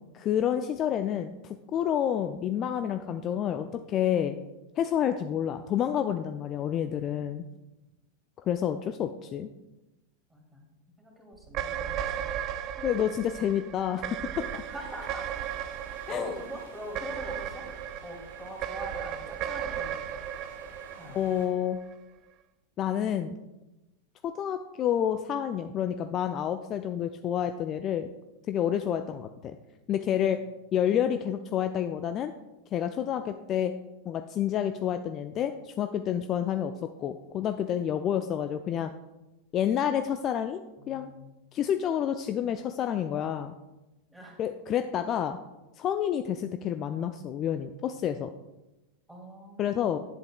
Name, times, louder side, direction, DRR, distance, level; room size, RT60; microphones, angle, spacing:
voice 1, 0.1-4.4 4.8-7.4 8.5-9.5 12.8-14.6 16.1-16.3 21.1-21.8 22.8-23.4 24.2-28.1 28.5-29.6 29.9-30.4 30.7-32.3 32.7-33.7 34.1-38.9 39.5-40.6 40.9-41.1 41.5-43.5 44.4-45.4 45.8-48.3 49.6-50.0, left 9 dB, 30° left, 8 dB, 0.4 m, -29 dB
voice 2, 10.3-10.6 11.0-12.3 12.8-12.9 14.7-15.2 16.1-17.7 18.0-20.0 21.0-21.2 40.8-41.3 44.1-44.4 49.1-49.8, equal, 5° right, -1 dB, 2.2 m, -43 dB
sound 1, 11.4-21.9, right 10 dB, 40° right, 0.3 m, -36 dB
sound 2, 14.3-21.5, right 2 dB, 70° right, 1.6 m, -51 dB
10.5 x 7.7 x 2.2 m, 1.0 s
figure-of-eight pair, 90°, 0 cm